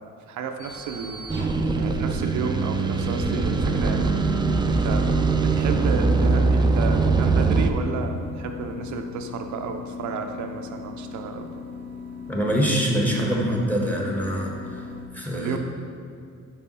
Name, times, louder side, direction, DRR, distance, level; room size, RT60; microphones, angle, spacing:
voice 1, 0.3-1.5 1.7-4.1 4.6-11.6 15.3-15.6, right 5 dB, 70° right, 5 dB, 0.5 m, -32 dB
sound 1, 0.6-15.1, left 5 dB, 35° left, 1.2 m, -38 dB
sound 2, 1.3-7.7, right 4 dB, 15° right, 0.3 m, -22 dB
voice 2, 12.3-14.8 15.1-15.6, equal, 5° left, -1 dB, 1.2 m, -24 dB
5.5 x 5.0 x 4.1 m, 2.4 s
cardioid pair, 90°, 30 cm